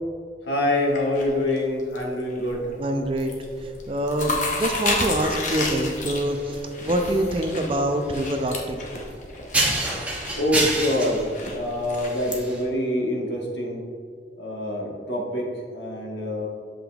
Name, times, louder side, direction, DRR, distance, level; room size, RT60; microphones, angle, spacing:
voice 1, 0.4-2.7 10.4-11.2 11.5-13.8 14.4-15.4 15.7-16.5, left 1 dB, 90° left, -2 dB, 1.3 m, -25 dB
sound 1, 0.8-2.0 2.4-2.8 3.0-3.4 3.7-12.4, left 3 dB, 45° left, 0.8 m, -31 dB
voice 2, 2.8-3.3 3.6-8.8, right 1 dB, 30° right, 4 dB, 0.5 m, -25 dB
sound 2, 3.2-12.6, right 2 dB, 10° right, 0.8 m, -31 dB
7.8 x 5.1 x 2.3 m, 2.3 s
head